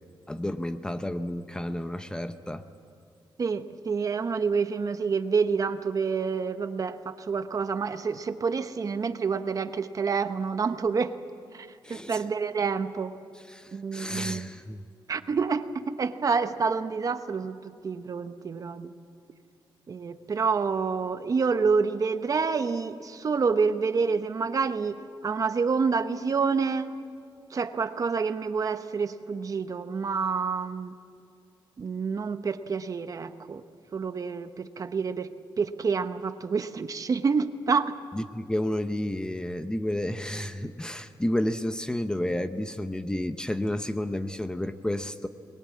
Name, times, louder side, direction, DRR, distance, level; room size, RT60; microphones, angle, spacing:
voice 1, 0.3-2.6 11.8-12.2 13.5-14.8 38.1-45.3, left 1 dB, 10° left, 9 dB, 0.8 m, -31 dB
voice 2, 3.4-11.2 11.5-13.1 13.7-14.5 15.1-17.6 17.8-18.9 19.9-24.9 25.2-26.9 27.5-30.9 31.8-33.6 33.9-35.3 35.6-38.0, right 5 dB, 40° right, 10 dB, 0.9 m, -28 dB
23.0 x 21.5 x 8.5 m, 2.5 s
wide cardioid pair, 135°, 9 cm